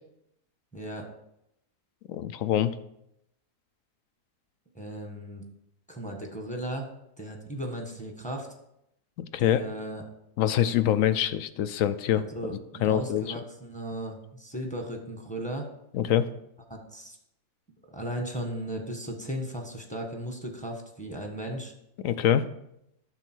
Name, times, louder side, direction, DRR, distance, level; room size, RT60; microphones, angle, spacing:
voice 1, 0.7-1.1 4.7-5.4 5.9-6.9 7.2-8.5 9.4-10.0 12.1-15.7 16.7-17.2 17.9-21.7, right 1 dB, 5° left, 2 dB, 1.3 m, -36 dB
voice 2, 2.1-2.7 9.2-9.6 10.4-12.2 12.8-13.2 15.9-16.3 22.0-22.4, left 11 dB, 70° left, 13 dB, 0.9 m, -24 dB
9.8 x 7.0 x 4.6 m, 0.80 s
omnidirectional pair, 1.6 m